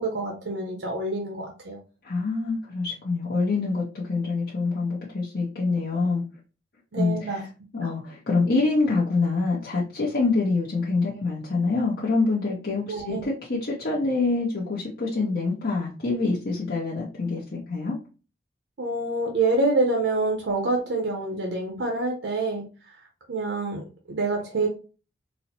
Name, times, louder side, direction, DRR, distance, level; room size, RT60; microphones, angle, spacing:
voice 1, 0.0-1.8 6.9-7.4 7.8-7.9 12.9-13.2 18.8-23.0 23.3-24.7, right 2 dB, 80° right, 1 dB, 0.6 m, -27 dB
voice 2, 2.0-6.2 6.9-7.5 7.7-18.0, left 3 dB, 55° left, -5 dB, 0.7 m, -26 dB
4.0 x 2.0 x 2.8 m, 0.34 s
head